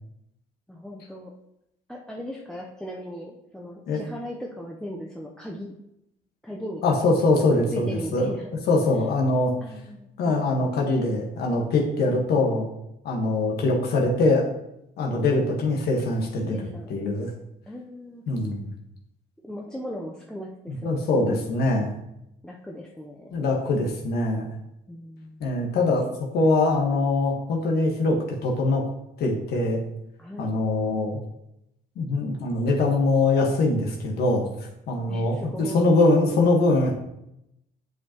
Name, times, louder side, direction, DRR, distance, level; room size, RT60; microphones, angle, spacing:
voice 1, 0.7-1.3 1.9-5.7 6.4-7.1 7.5-8.5 9.6-10.8 16.5-16.9 17.7-18.2 19.4-21.5 22.4-23.4 24.9-25.5 30.2-30.6 35.1-35.9, equal, 5° left, -1 dB, 0.6 m, -38 dB
voice 2, 6.8-8.3 8.7-9.5 10.2-12.7 13.0-14.4 15.0-17.3 18.3-18.7 20.8-22.0 23.3-24.5 25.4-26.0 26.3-28.2 28.4-28.8 29.2-29.8 30.4-31.2 32.0-34.4 34.9-36.9, left 2 dB, 70° left, 0 dB, 1.3 m, -23 dB
7.9 x 5.3 x 2.9 m, 0.84 s
cardioid pair, 110°, 17 cm